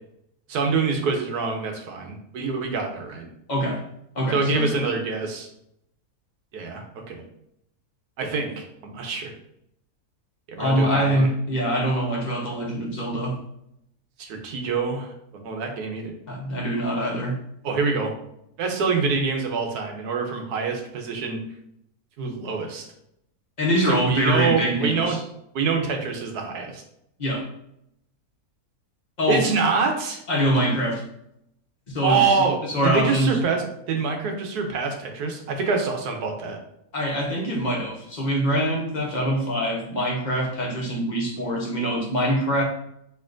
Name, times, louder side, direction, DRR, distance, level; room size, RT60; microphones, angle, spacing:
voice 1, 0.5-3.3 4.3-5.5 6.5-7.2 8.2-9.3 10.5-11.3 14.2-16.1 17.6-18.1 18.6-21.4 22.2-22.9 23.9-25.2 25.5-26.8 29.3-30.2 32.0-36.6, right 4 dB, 90° right, 3 dB, 1.3 m, -25 dB
voice 2, 3.5-3.8 4.1-4.8 10.6-13.4 16.3-17.4 23.6-25.2 27.2-27.5 29.2-29.5 30.3-31.0 31.9-33.4 36.9-42.6, equal, 35° left, -1 dB, 1.0 m, -24 dB
6.6 x 3.1 x 2.5 m, 0.77 s
omnidirectional pair, 1.6 m